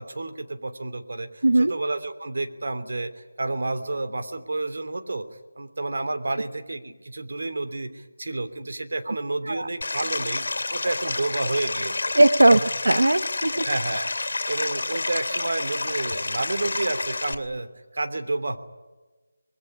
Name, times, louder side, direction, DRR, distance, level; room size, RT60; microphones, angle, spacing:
voice 1, 0.0-5.2 5.6-10.4 10.7-12.1 12.5-12.6 13.6-18.6, right 2 dB, 60° right, 8 dB, 3.0 m, -30 dB
Stream, 9.8-17.3, left 3 dB, 60° left, 3.0 m, -29 dB
voice 2, 12.1-12.6 12.8-13.7, right 2 dB, 90° right, 11 dB, 1.1 m, -18 dB
26.0 x 20.5 x 9.9 m, 1.2 s
figure-of-eight pair, 170°, 0 cm